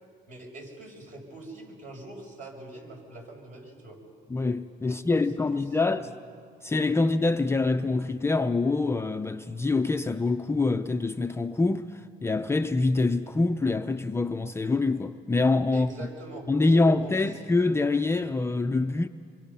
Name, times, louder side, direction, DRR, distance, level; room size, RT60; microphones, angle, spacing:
voice 1, 0.3-4.0 4.9-5.2 5.5-6.1 15.7-17.3, right 1 dB, 50° right, 6.2 m, -44 dB
voice 2, 4.3-6.1 6.6-16.1 16.5-19.1, left 3 dB, 15° left, 0.5 m, -25 dB
26.5 x 24.5 x 5.6 m
cardioid pair, 110°, 17 cm